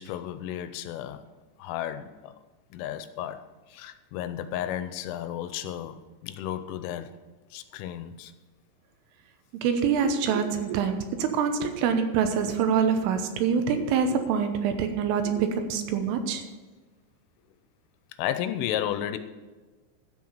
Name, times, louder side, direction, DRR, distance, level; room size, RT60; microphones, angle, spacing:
voice 1, 0.0-1.3 1.6-2.3 2.7-7.2 7.5-8.3 18.2-19.2, left 11 dB, 90° left, 3.2 m, -33 dB
voice 2, 9.6-16.4, right 6 dB, 85° right, 3.5 m, -25 dB
12.5 x 7.6 x 5.6 m
omnidirectional pair, 5.7 m